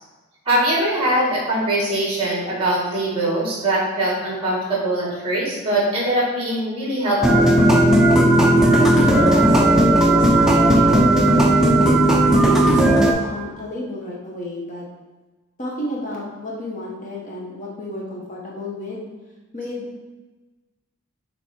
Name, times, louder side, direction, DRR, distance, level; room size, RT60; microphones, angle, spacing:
voice 1, 0.5-7.5, right 1 dB, 25° right, -5 dB, 1.8 m, -22 dB
sound 1, 7.2-13.1, right 1 dB, 5° right, 0.5 m, -15 dB
voice 2, 8.7-11.6 12.3-14.8 15.6-19.0 19.5-19.8, equal, 35° left, -4 dB, 1.1 m, -30 dB
7.5 x 3.1 x 4.4 m, 1.2 s
head